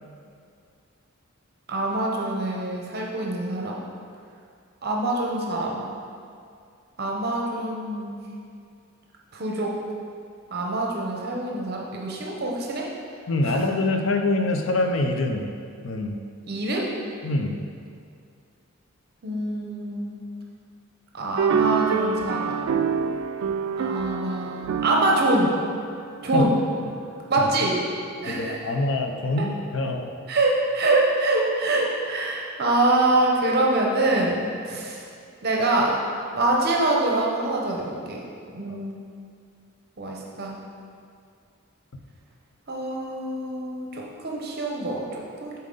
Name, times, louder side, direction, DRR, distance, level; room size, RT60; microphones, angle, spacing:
voice 1, 1.7-3.8 4.8-5.9 7.0-8.2 9.3-9.7 10.5-12.8 13.5-13.6 16.5-16.9 19.2-20.1 21.1-22.6 23.8-25.5 26.2-26.6 27.3-27.8 28.2-28.6 30.3-35.0 35.4-38.2 38.5-39.0 40.0-40.6 42.7-45.5, right 2 dB, 50° right, -2 dB, 0.8 m, -25 dB
voice 2, 13.3-15.5 15.8-16.1 17.2-17.6 26.3-26.5 28.2-30.1 38.7-38.8, left 2 dB, 65° left, 4 dB, 0.5 m, -25 dB
sound 1, 21.4-26.9, right 6 dB, 80° right, 0.3 m, -27 dB
7.3 x 4.4 x 3.8 m, 2.3 s
head